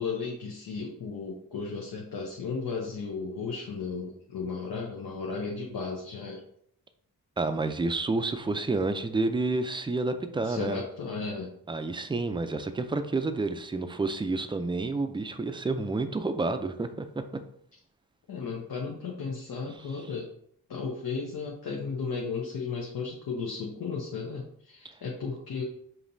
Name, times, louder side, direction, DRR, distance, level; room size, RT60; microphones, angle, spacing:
voice 1, 0.0-6.4 10.4-11.5 18.3-20.3 20.7-25.6, left 5 dB, 80° left, -2 dB, 0.8 m, -34 dB
voice 2, 7.4-10.8 11.7-17.2, right 3 dB, 15° right, 8 dB, 0.4 m, -29 dB
5.1 x 2.9 x 2.6 m, 0.67 s
cardioid pair, 65°, 37 cm